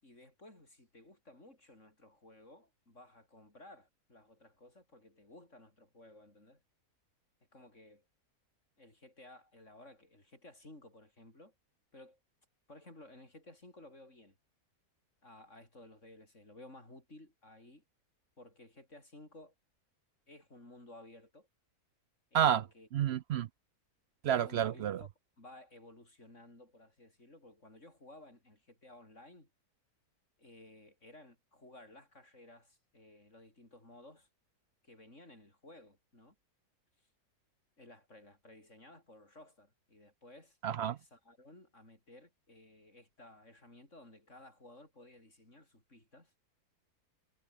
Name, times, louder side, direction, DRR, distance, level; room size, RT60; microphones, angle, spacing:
voice 1, 0.0-6.6 7.5-8.1 8.8-11.5 11.9-12.2 12.7-14.4 15.2-17.8 18.4-19.5 20.3-21.5 22.3-22.9 24.3-25.1 25.4-29.5 30.4-34.3 34.8-36.4 37.8-46.3, left 1 dB, 50° left, 7.4 m, -56 dB
voice 2, 22.9-23.5 24.2-25.0 40.6-40.9, right 9 dB, 70° right, 0.6 m, -29 dB
omnidirectional pair, 1.6 m